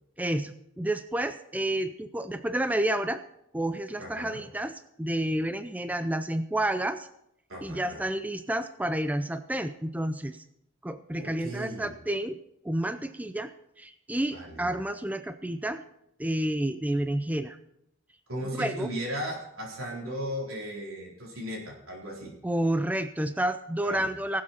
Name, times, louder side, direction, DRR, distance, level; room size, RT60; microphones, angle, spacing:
voice 1, 0.2-3.2 3.5-4.7 5.0-7.1 7.6-10.4 10.8-12.4 12.6-13.5 13.8-15.8 16.2-17.6 18.6-18.9 22.4-24.4, right 1 dB, 10° right, 10 dB, 0.4 m, -30 dB
voice 2, 4.0-4.4 7.5-8.0 11.1-11.9 14.3-14.7 18.3-22.4 23.8-24.1, equal, 90° right, -1 dB, 3.8 m, -36 dB
19.0 x 7.6 x 4.3 m, 0.78 s
head